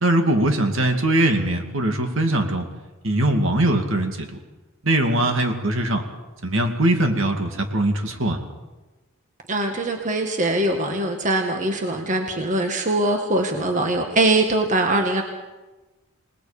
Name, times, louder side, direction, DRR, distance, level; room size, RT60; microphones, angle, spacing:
voice 1, 0.0-2.6 3.0-4.3 4.8-6.0 6.4-8.4, right 1 dB, 60° right, 4 dB, 2.4 m, -21 dB
voice 2, 9.5-15.2, right 2 dB, 35° right, 3 dB, 1.9 m, -22 dB
27.5 x 19.5 x 5.2 m, 1.2 s
head